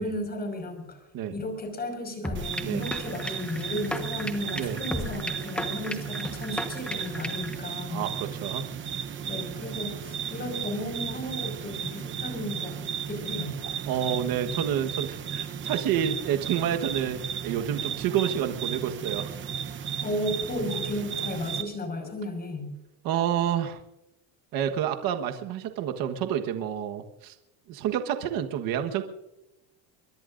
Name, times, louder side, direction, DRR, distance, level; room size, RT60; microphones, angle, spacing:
voice 1, 0.0-1.0 1.3-8.1 9.3-13.6 14.5-14.6 20.0-22.7, left 1 dB, 20° left, 5 dB, 5.6 m, -34 dB
sound 1, 2.2-7.6, left 1 dB, 5° left, 1.2 m, -35 dB
sound 2, 2.3-21.6, right 8 dB, 25° right, 0.9 m, -34 dB
voice 2, 7.9-8.6 13.9-19.2 23.0-23.8 24.5-27.3 27.7-29.0, right 9 dB, 50° right, 6 dB, 1.4 m, -29 dB
23.0 x 21.5 x 2.6 m, 0.93 s
cardioid pair, 160°, 44 cm